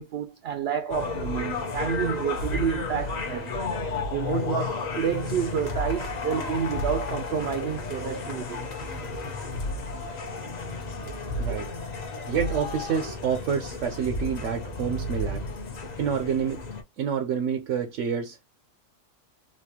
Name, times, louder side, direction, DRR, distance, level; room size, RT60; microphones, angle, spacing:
voice 1, 0.0-3.6 3.8-8.7, right 7 dB, 60° right, 0.7 m, -29 dB
sound 1, 0.9-16.8, left 3 dB, 40° left, 0.7 m, -32 dB
voice 2, 11.1-11.7 12.3-15.4 16.0-16.6 17.0-18.4, right 7 dB, 80° right, 1.0 m, -28 dB
4.1 x 2.3 x 2.8 m
omnidirectional pair, 1.3 m